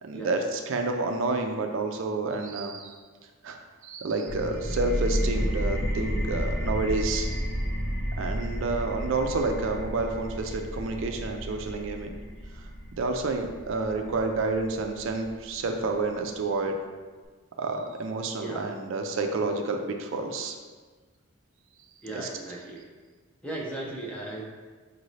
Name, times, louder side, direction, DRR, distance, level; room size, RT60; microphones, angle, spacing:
voice 1, 0.0-3.0 3.4-3.6 3.8-7.5 8.2-12.2 12.6-12.7 13.0-16.8 17.6-20.6 22.1-22.3, right 3 dB, 60° right, 4 dB, 0.4 m, -29 dB
sound 1, 4.3-15.7, equal, 45° left, 0.9 m, -32 dB
voice 2, 22.0-22.9 23.4-24.4, right 2 dB, 5° left, -3 dB, 0.5 m, -36 dB
6.2 x 2.6 x 3.1 m, 1.4 s
head